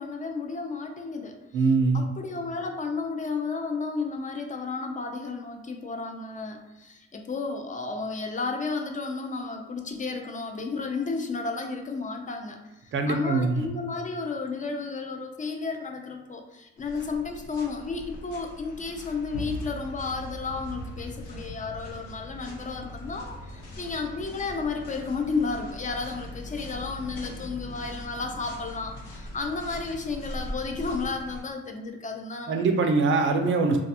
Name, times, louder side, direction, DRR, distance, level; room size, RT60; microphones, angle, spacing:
voice 1, 0.0-1.6 1.9-32.7, left 4 dB, 25° left, 4 dB, 0.3 m, -33 dB
voice 2, 1.5-2.1 12.9-13.7 32.5-33.8, right 3 dB, 40° right, 5 dB, 0.4 m, -23 dB
sound 1, 16.8-31.4, left 1 dB, 90° left, 0.8 m, -40 dB
2.3 x 2.3 x 2.7 m, 1.0 s
cardioid pair, 90°, 30 cm